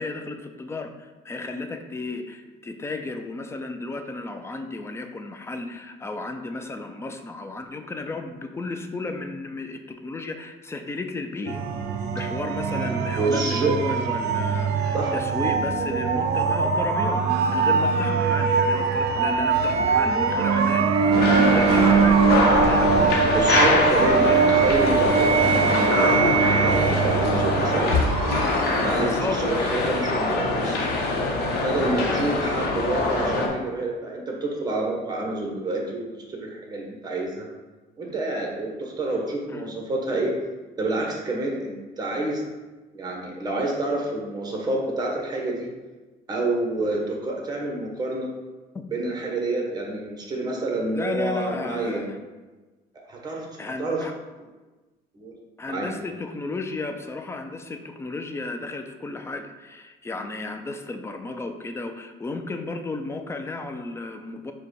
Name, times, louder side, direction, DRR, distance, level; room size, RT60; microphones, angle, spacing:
voice 1, 0.0-11.6 12.1-23.6 24.2-24.5 29.0-29.4 39.5-39.7 48.7-48.8 50.9-52.2 53.6-54.1 55.6-64.5, left 3 dB, 15° left, 6 dB, 0.4 m, -33 dB
sound 1, 11.5-29.0, right 5 dB, 75° right, 0.4 m, -22 dB
voice 2, 12.9-13.7 14.9-15.2 23.3-27.9 28.7-30.9 31.6-37.5 38.0-40.3 40.8-42.4 42.9-45.7 46.3-48.3 48.9-52.1 53.1-54.0 55.1-55.3 55.7-55.9, right 2 dB, 25° right, -1 dB, 1.0 m, -28 dB
sound 2, 21.1-33.5, left 2 dB, 75° left, 0.9 m, -24 dB
4.8 x 2.3 x 4.6 m, 1.2 s
cardioid pair, 110°, 17 cm